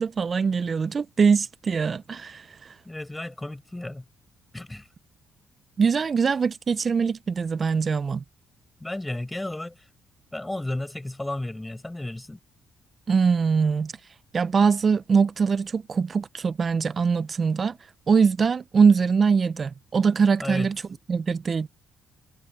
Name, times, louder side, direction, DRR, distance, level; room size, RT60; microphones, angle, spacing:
voice 1, 0.0-2.8 5.8-8.2 13.1-20.8 21.1-21.7, right 5 dB, 40° right, 0.4 m, -23 dB
voice 2, 2.9-4.0 4.5-4.8 8.8-9.8 10.3-12.4 20.4-20.7, left 1 dB, 10° left, 7.3 m, -33 dB
cardioid pair, 90°, 0 cm